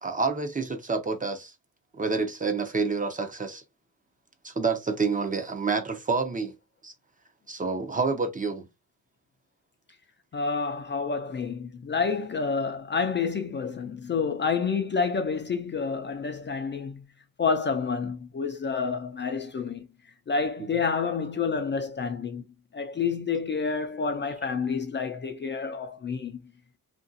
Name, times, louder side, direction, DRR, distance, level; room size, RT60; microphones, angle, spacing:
voice 1, 0.0-1.5 1.9-3.6 4.4-6.5 6.8-6.9 7.5-8.7, right 4 dB, 20° right, 0.6 m, -28 dB
voice 2, 10.3-17.0 17.4-19.9 20.3-22.4 22.7-26.4, left 5 dB, 30° left, 0.4 m, -29 dB
2.8 x 2.6 x 2.6 m
cardioid pair, 110°, 36 cm